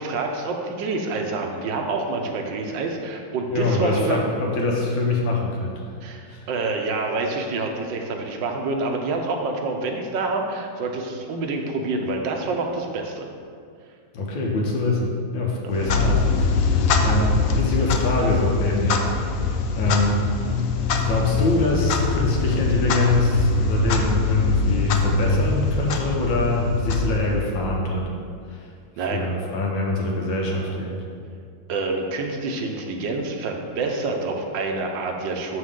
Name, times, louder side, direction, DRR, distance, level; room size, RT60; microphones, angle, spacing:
voice 1, 0.0-4.2 6.0-13.3 15.6-15.7 29.0-29.2 31.7-35.6, right 3 dB, 80° right, 3 dB, 1.4 m, -27 dB
voice 2, 3.5-5.8 6.3-6.5 14.1-19.1 19.7-20.2 21.0-28.1 28.5-28.7 29.0-31.1, left 2 dB, 90° left, -1 dB, 1.8 m, -24 dB
Clock, 15.7-27.7, left 4 dB, 70° left, 0.8 m, -23 dB
6.9 x 6.2 x 3.7 m, 2.2 s
omnidirectional pair, 2.0 m